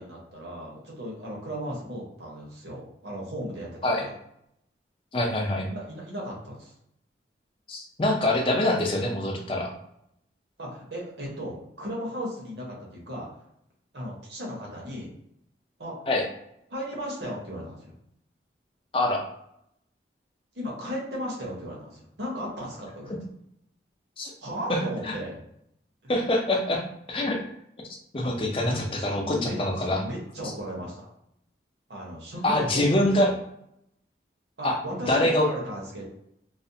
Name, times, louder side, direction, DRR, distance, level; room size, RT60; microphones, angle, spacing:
voice 1, 0.0-4.1 5.6-6.7 10.6-13.3 13.9-15.1 15.8-16.0 16.7-17.9 20.5-23.3 24.4-25.4 26.0-26.1 28.6-31.0 31.9-33.3 34.6-36.0, equal, 75° right, -3 dB, 0.9 m, -36 dB
voice 2, 5.1-5.7 7.7-9.7 16.1-16.2 18.9-19.2 24.2-24.3 24.7-24.8 25.0-25.1 26.1-27.4 28.1-30.0 32.4-33.3 34.6-34.8 35.1-35.5, left 1 dB, 30° left, 1 dB, 0.4 m, -24 dB
2.4 x 2.1 x 2.6 m, 0.75 s
head